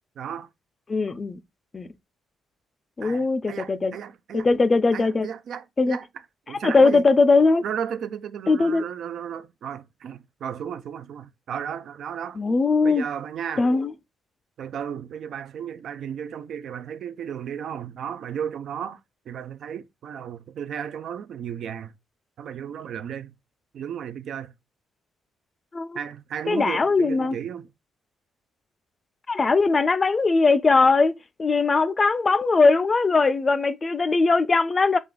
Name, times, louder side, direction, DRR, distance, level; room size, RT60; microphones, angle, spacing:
voice 1, 0.2-0.5 3.0-4.5 4.9-6.1 6.5-7.1 7.6-12.4 12.8-13.7 14.6-19.0 19.3-21.9 22.4-23.3 23.7-24.5 25.9-27.7, right 8 dB, 65° right, 0.3 m, -34 dB
voice 2, 0.9-1.4 1.7-1.9 3.0-4.0 4.3-5.3 5.8-6.0 6.5-7.6 8.5-8.8 12.4-13.0 13.6-13.9 25.7-26.0 26.5-27.4 29.3-31.1 31.4-35.0, left 3 dB, 30° left, 0.3 m, -20 dB
3.4 x 2.4 x 3.6 m
cardioid pair, 90°, 0 cm